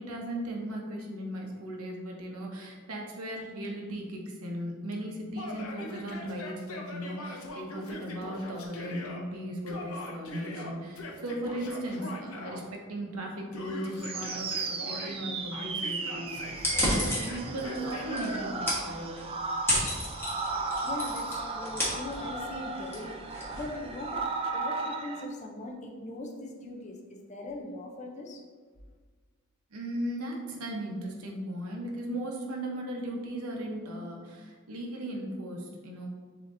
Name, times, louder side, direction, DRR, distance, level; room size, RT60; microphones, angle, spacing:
voice 1, 0.0-19.2 29.7-36.1, right 1 dB, 90° right, 0 dB, 0.9 m, -37 dB
Yell, 5.3-9.2 9.7-12.6 13.5-15.2 15.5-18.4, left 2 dB, 80° left, 0.7 m, -42 dB
sound 1, 14.0-25.2, right 3 dB, 25° right, 0.3 m, -35 dB
sound 2, 16.5-24.3, left 1 dB, 10° left, 1.2 m, -33 dB
voice 2, 20.8-28.4, left 2 dB, 35° left, 1 dB, 0.5 m, -40 dB
7.0 x 2.9 x 2.6 m, 1.5 s
head